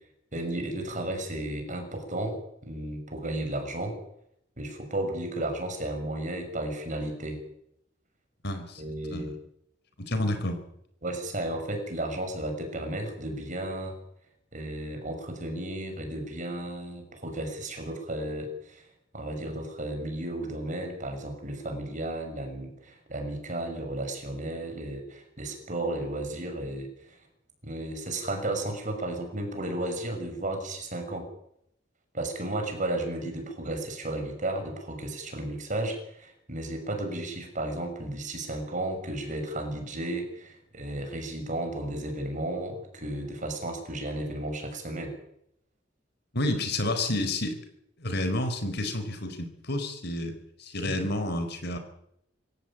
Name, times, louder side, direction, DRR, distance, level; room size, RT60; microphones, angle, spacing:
voice 1, 0.3-4.0 4.6-7.4 8.8-9.3 11.0-14.0 14.5-18.8 19.1-27.2 27.6-31.3 32.1-45.1, right 1 dB, 40° right, 6 dB, 6.5 m, -33 dB
voice 2, 8.4-8.8 9.1-9.4 10.0-10.6 46.3-47.6 48.0-50.3 50.6-51.8, left 1 dB, 60° left, 8 dB, 4.5 m, -30 dB
26.0 x 15.5 x 8.8 m, 0.75 s
head